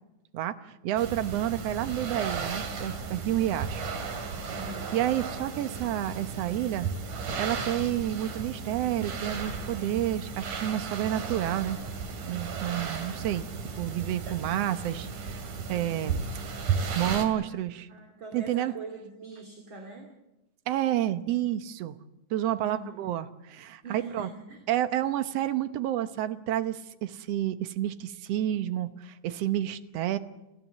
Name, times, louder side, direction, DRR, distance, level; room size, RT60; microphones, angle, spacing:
voice 1, 0.3-3.8 4.6-6.9 7.4-11.8 12.2-13.5 13.8-15.4 15.7-16.2 17.0-17.9 18.3-18.7 20.7-22.0 22.3-24.3 24.7-30.2, right 12 dB, 65° right, 10 dB, 1.9 m, -30 dB
sound 1, 1.0-17.3, right 5 dB, 80° right, 4.1 m, -35 dB
voice 2, 4.5-5.1 16.9-17.5 17.9-20.1 22.6-23.0 23.8-24.6, right 3 dB, 40° right, 1 dB, 3.0 m, -43 dB
30.0 x 15.0 x 7.4 m, 0.98 s
omnidirectional pair, 3.5 m